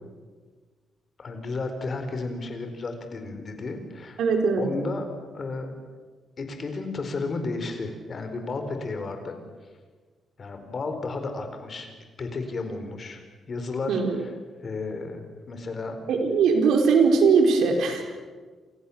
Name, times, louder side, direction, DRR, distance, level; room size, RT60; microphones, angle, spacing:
voice 1, 1.2-4.2 4.6-5.1 5.3-5.7 6.4-9.4 10.4-11.9 12.2-13.2 13.5-14.3 14.6-15.2 15.5-16.0, left 3 dB, 35° left, 6 dB, 4.3 m, -33 dB
voice 2, 4.2-4.7 13.9-14.2 16.1-18.0, right 5 dB, 80° right, 4 dB, 4.9 m, -20 dB
29.0 x 27.5 x 7.3 m, 1.4 s
wide cardioid pair, 175°, 0 cm